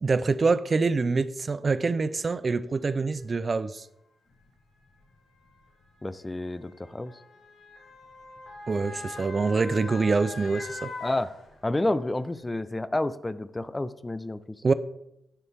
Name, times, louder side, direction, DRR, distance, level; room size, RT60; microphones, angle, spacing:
voice 1, 0.0-3.8 8.7-10.9 14.6-14.7, right 4 dB, 45° right, 0.4 m, -25 dB
Motor vehicle (road) / Siren, 2.0-2.1 3.0-3.2 4.3-11.9 12.3-12.4, left 3 dB, 85° left, 1.6 m, -43 dB
voice 2, 6.0-7.1 11.0-11.3 11.6-14.6, left 2 dB, 20° left, 0.5 m, -30 dB
10.0 x 3.5 x 4.4 m
cardioid pair, 55°, 0 cm